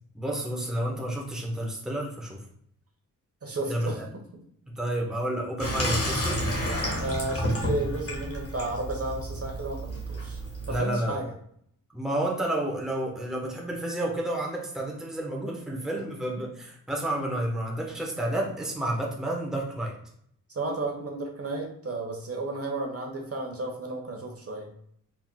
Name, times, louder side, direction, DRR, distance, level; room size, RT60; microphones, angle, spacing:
voice 1, 0.1-2.4 3.7-4.0 4.7-6.4 10.7-11.2 11.9-19.9, right 1 dB, ahead, -2 dB, 1.0 m, -30 dB
voice 2, 3.4-4.0 7.0-10.4 10.7-11.3 20.5-24.7, right 2 dB, 40° right, 1 dB, 1.1 m, -33 dB
Water tap faucet / Sink (filling or washing), 5.6-10.8, equal, 40° left, 1.3 m, -30 dB
4.5 x 3.6 x 2.2 m, 0.67 s
cardioid pair, 65°, 35 cm